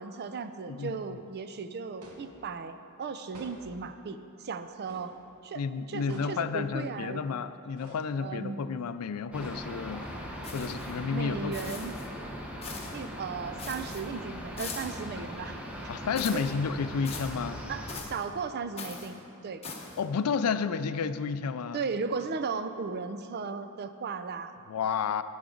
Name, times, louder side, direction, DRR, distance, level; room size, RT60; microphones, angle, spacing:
voice 1, 0.0-5.1 5.4-5.6 5.9-7.2 8.2-8.7 11.1-11.9 12.9-15.6 16.3-16.4 17.7-19.6 21.7-24.6, right 5 dB, 50° right, 10 dB, 0.5 m, -36 dB
voice 2, 0.7-1.2 5.5-10.1 10.5-11.8 15.9-17.6 20.0-21.8 24.7-25.2, left 5 dB, 90° left, 13 dB, 0.4 m, -31 dB
sound 1, 2.0-2.4 3.3-3.8 4.9-5.2 6.1-6.5 7.8-8.1 9.3-9.9, right 1 dB, 90° right, 1.2 m, -49 dB
sound 2, 9.3-18.0, equal, 5° right, 0.9 m, -40 dB
sound 3, 10.4-11.0 11.5-12.1 12.6-13.0 13.6-14.0 14.6-15.0 16.2-16.5 17.1-17.4 17.9-18.2 18.8-19.1 19.6-20.0, left 4 dB, 30° left, 1.0 m, -41 dB
11.0 x 9.5 x 3.8 m, 2.6 s
head